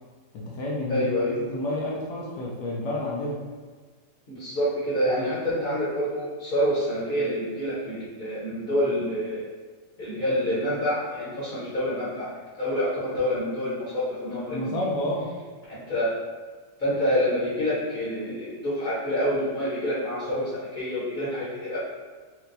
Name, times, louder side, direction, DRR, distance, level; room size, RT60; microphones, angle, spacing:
voice 1, 0.3-3.4 14.5-15.3, left 1 dB, 75° left, -4 dB, 1.2 m, -30 dB
voice 2, 0.9-1.4 4.3-9.4 10.0-14.8 15.7-16.1 16.8-21.8, equal, 40° left, -10 dB, 0.9 m, -27 dB
4.3 x 2.2 x 2.6 m, 1.5 s
omnidirectional pair, 1.9 m